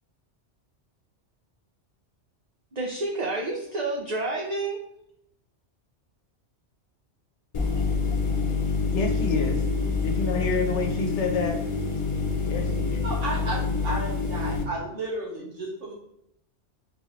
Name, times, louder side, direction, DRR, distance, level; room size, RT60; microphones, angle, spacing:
voice 1, 2.7-4.8, right 2 dB, 45° right, -2 dB, 0.6 m, -29 dB
sound 1, 7.5-14.6, left 4 dB, 60° left, 0.3 m, -27 dB
voice 2, 8.9-9.6 10.0-11.6 12.5-13.2, left 3 dB, 75° left, 2 dB, 1.1 m, -29 dB
voice 3, 13.0-15.9, right 2 dB, 85° right, -4 dB, 1.7 m, -33 dB
3.8 x 3.8 x 3.1 m, 0.75 s
omnidirectional pair, 1.2 m